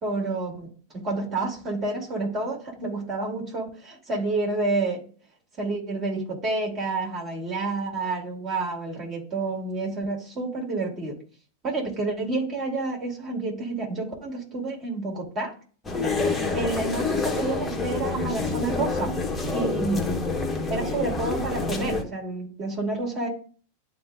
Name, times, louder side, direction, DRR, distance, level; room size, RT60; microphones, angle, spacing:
voice 1, 0.0-3.6 4.1-5.0 5.6-11.2 11.6-15.5 16.5-19.1 19.5-20.2 20.7-23.3, right 3 dB, 30° right, -1 dB, 2.7 m, -29 dB
sound 1, 15.8-22.0, left 3 dB, 15° left, 1.0 m, -27 dB
11.5 x 3.8 x 2.5 m, 0.42 s
figure-of-eight pair, 90°, 0 cm